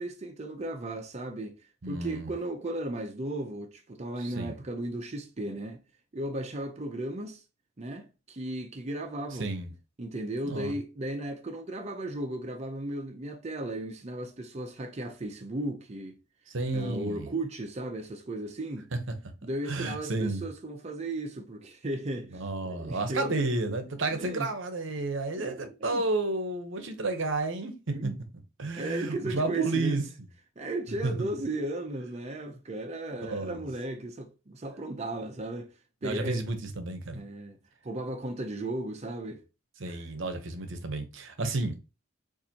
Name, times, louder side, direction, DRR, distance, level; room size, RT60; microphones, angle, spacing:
voice 1, 0.0-5.8 6.1-7.4 7.8-9.5 10.0-16.2 16.7-18.9 19.4-23.5 24.1-24.5 25.4-26.0 27.9-28.2 28.8-30.0 30.6-36.4 37.1-37.6 37.8-39.4 39.8-40.1, right 1 dB, 35° right, 0.6 m, -35 dB
voice 2, 1.8-2.3 4.2-4.6 9.4-9.7 10.4-10.7 16.5-17.3 18.9-19.0 19.7-20.4 22.3-27.7 28.0-28.1 28.6-30.0 31.0-31.3 33.2-33.7 36.0-37.2 39.8-41.7, right 2 dB, 65° right, 0.8 m, -31 dB
7.2 x 2.5 x 2.8 m
head